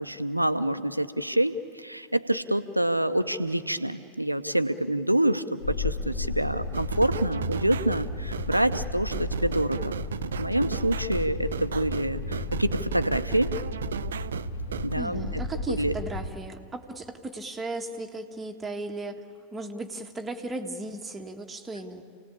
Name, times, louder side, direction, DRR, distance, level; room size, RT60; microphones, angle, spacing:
voice 1, 0.0-10.0 10.2-13.5 14.8-15.3 15.7-15.9, right 1 dB, 90° right, 11 dB, 0.9 m, -27 dB
sound 1, 5.6-16.3, left 2 dB, 60° left, 2.6 m, -33 dB
sound 2, 6.7-14.9, right 8 dB, 65° right, 0.5 m, -35 dB
voice 2, 15.0-19.2 19.5-22.0, right 2 dB, 10° right, 3 dB, 1.9 m, -36 dB
29.0 x 18.5 x 8.7 m, 2.3 s
figure-of-eight pair, 90°, 0 cm